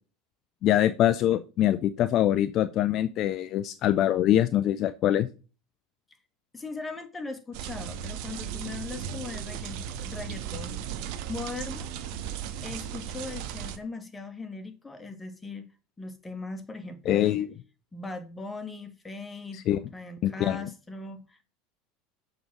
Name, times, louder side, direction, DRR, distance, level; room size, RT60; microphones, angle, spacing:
voice 1, 0.6-5.3 17.1-17.5 19.5-19.8 20.2-20.6, left 12 dB, 50° left, 0.5 m, -24 dB
voice 2, 6.5-11.9 12.6-15.7 16.0-17.4 17.9-19.6 19.9-21.5, left 3 dB, 15° left, 1.6 m, -39 dB
sound 1, 7.5-13.8, right 9 dB, 65° right, 0.9 m, -36 dB
6.9 x 3.8 x 6.1 m
hypercardioid pair, 90°, 0 cm